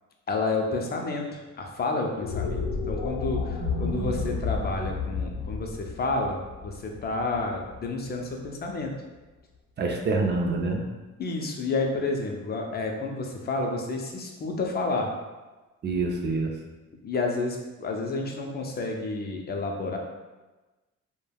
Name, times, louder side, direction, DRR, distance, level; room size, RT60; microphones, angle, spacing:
voice 1, 0.3-8.9 11.2-15.1 17.0-20.0, left 3 dB, 35° left, 1 dB, 0.5 m, -30 dB
sound 1, 2.2-8.5, left 5 dB, 85° left, 0.5 m, -32 dB
voice 2, 3.6-4.3 9.8-10.8 15.8-16.5, right 3 dB, 35° right, 2 dB, 0.4 m, -27 dB
3.2 x 2.1 x 2.2 m, 1.2 s
cardioid pair, 90°, 30 cm